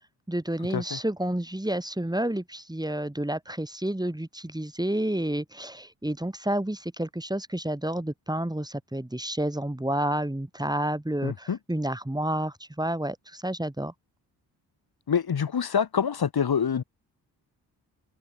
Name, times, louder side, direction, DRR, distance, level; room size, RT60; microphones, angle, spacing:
voice 1, 0.3-13.9, right 1 dB, 10° right, 4.0 m, -30 dB
voice 2, 11.2-11.6 15.1-16.8, left 7 dB, 45° left, 3.0 m, -26 dB
open air
hypercardioid pair, 40°, 49 cm